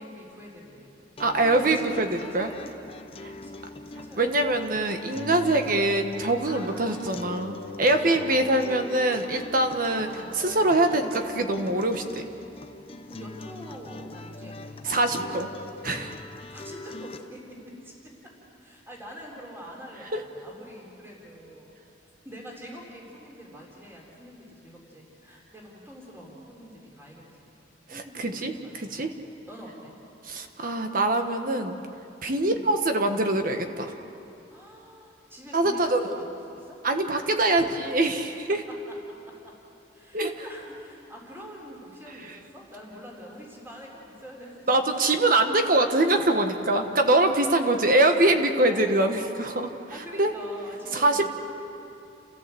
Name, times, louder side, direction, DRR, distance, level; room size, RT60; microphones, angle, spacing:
voice 1, 0.0-1.2 1.5-2.8 3.3-4.6 6.5-8.9 10.0-10.9 13.1-15.3 16.5-22.0 22.2-27.5 27.9-30.0 32.3-32.7 34.5-36.9 37.5-37.7 38.5-39.6 39.9-45.2 47.5-48.4 48.7-49.3 49.9-51.2, equal, 15° right, -2 dB, 3.9 m, -46 dB
sound 1, 1.2-17.2, left 2 dB, 30° left, 0.9 m, -41 dB
voice 2, 1.2-2.1 2.3-2.5 3.2-3.3 4.2-12.3 14.8-15.5 15.8-16.2 20.1-20.2 28.2-29.1 30.3-31.8 32.2-33.9 35.5-36.0 36.8-38.6 40.1-40.4 44.7-49.7 50.2-50.3 50.9-51.2, right 2 dB, 50° right, 6 dB, 1.4 m, -23 dB
30.0 x 15.0 x 7.8 m, 2.8 s
head